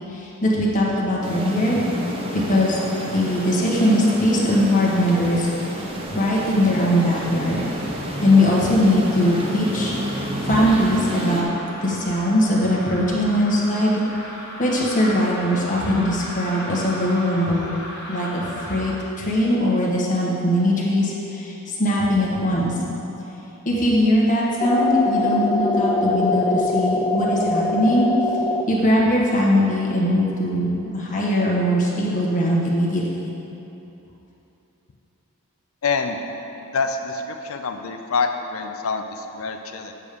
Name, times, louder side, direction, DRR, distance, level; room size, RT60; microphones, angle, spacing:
voice 1, 0.1-1.8 2.3-2.8 3.1-5.5 6.1-7.6 8.2-11.5 11.8-13.9 14.6-17.7 18.1-22.8 23.6-28.1 28.7-33.3, left 1 dB, 35° left, -5 dB, 1.4 m, -20 dB
sound 1, 1.2-11.4, equal, 25° right, 0.8 m, -29 dB
sound 2, 3.1-18.9, equal, 55° left, 1.4 m, -38 dB
sound 3, 24.6-28.6, left 2 dB, 20° left, 0.3 m, -22 dB
voice 2, 35.8-36.2 36.6-39.9, left 4 dB, 70° left, 6 dB, 0.5 m, -26 dB
8.3 x 3.6 x 6.8 m, 3.0 s
head